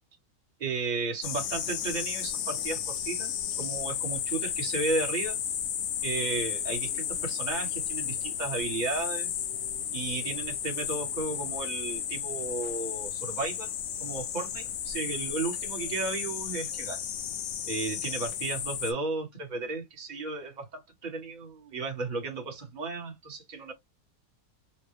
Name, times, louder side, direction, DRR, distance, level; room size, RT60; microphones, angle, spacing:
voice 1, 0.6-5.4 6.0-9.3 9.9-13.7 14.0-17.0 17.6-23.7, right 3 dB, 30° right, 1.3 m, -34 dB
sound 1, 1.2-18.9, left 9 dB, 60° left, 0.8 m, -33 dB
4.2 x 2.2 x 3.0 m
omnidirectional pair, 1.6 m